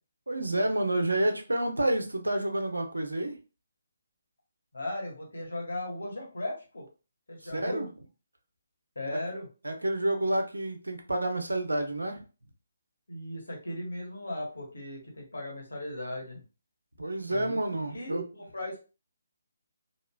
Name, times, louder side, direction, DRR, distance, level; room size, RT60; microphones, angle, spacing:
voice 1, 0.3-3.4 7.4-7.9 9.6-12.2 17.0-18.2, right 1 dB, 80° right, 5 dB, 0.6 m, -29 dB
voice 2, 4.7-6.8 7.3-7.8 8.9-9.5 13.1-16.4 17.3-17.6 17.9-18.8, left 1 dB, 70° left, 0 dB, 1.2 m, -37 dB
3.1 x 2.3 x 2.3 m, 0.32 s
figure-of-eight pair, 140°, 0 cm